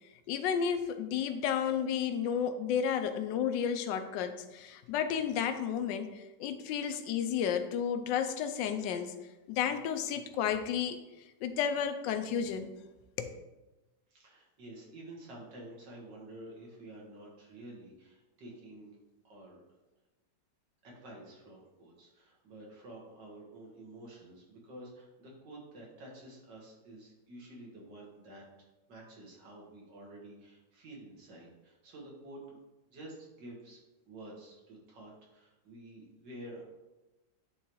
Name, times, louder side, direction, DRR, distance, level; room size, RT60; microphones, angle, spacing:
voice 1, 0.3-9.1 9.5-11.0 11.4-12.7 13.2-13.3, left 8 dB, 85° left, 9 dB, 1.3 m, -32 dB
voice 2, 14.1-19.0 19.2-19.6 20.8-28.4 28.9-32.6 32.9-33.8 34.1-36.6, right 1 dB, 75° right, -3 dB, 2.2 m, -50 dB
9.3 x 3.5 x 3.0 m, 1.1 s
omnidirectional pair, 1.9 m